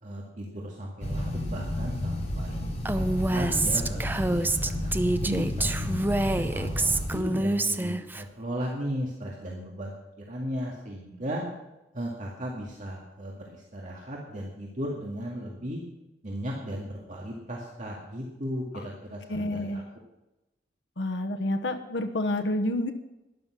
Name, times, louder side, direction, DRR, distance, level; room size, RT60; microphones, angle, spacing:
voice 1, 0.0-2.6 2.9-5.9 6.3-9.9 10.3-11.5 11.9-15.8 16.2-19.8, equal, 45° right, -2 dB, 2.1 m, -36 dB
sound 1, 1.0-7.2, left 1 dB, 40° left, 4.3 m, -31 dB
Female speech woman speaking, 2.9-8.2, right 2 dB, 10° right, 0.6 m, -27 dB
voice 2, 19.3-19.8 21.0-22.9, left 1 dB, 80° left, 6 dB, 1.1 m, -29 dB
12.5 x 11.0 x 6.1 m, 0.97 s
head